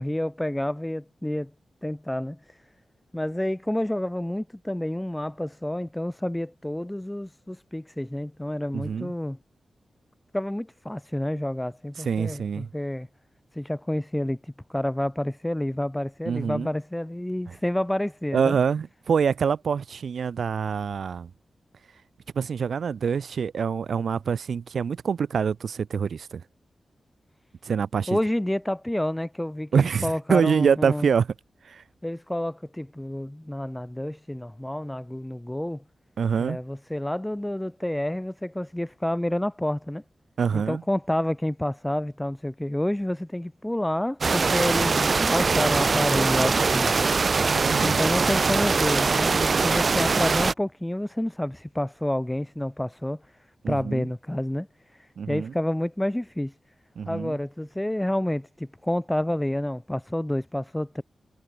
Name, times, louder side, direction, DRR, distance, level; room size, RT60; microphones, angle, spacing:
voice 1, 0.0-1.5 1.8-2.6 3.1-9.4 10.3-13.1 13.5-18.6 28.1-31.1 32.0-35.8 36.4-40.0 40.5-46.9 47.8-53.2 53.7-54.7 54.9-56.5 57.0-61.0, left 1 dB, 5° left, 6.2 m, -29 dB
voice 2, 8.7-9.1 12.0-12.7 16.3-16.7 18.3-21.3 22.3-26.4 27.6-28.2 29.7-31.3 31.7-31.8 36.2-36.6 40.4-40.8 47.5-48.0 53.6-54.1 55.2-55.5 57.0-57.4, right 6 dB, 75° right, 4.0 m, -25 dB
sound 1, 44.2-50.5, right 4 dB, 45° right, 0.7 m, -22 dB
wide cardioid pair, 140°, 0 cm